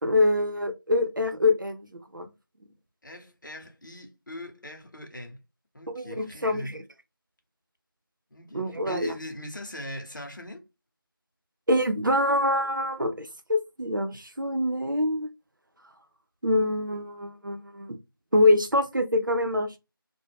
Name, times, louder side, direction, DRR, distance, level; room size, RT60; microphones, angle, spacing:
voice 1, 0.0-1.9 2.1-2.3 5.9-6.8 8.5-9.1 11.7-15.3 16.4-18.0 18.3-19.8, left 1 dB, 60° right, 0.6 m, -25 dB
voice 2, 3.0-5.4 5.7-6.8 8.3-10.7, left 1 dB, 55° left, 0.8 m, -40 dB
2.3 x 2.1 x 3.3 m
figure-of-eight pair, 175°, 12 cm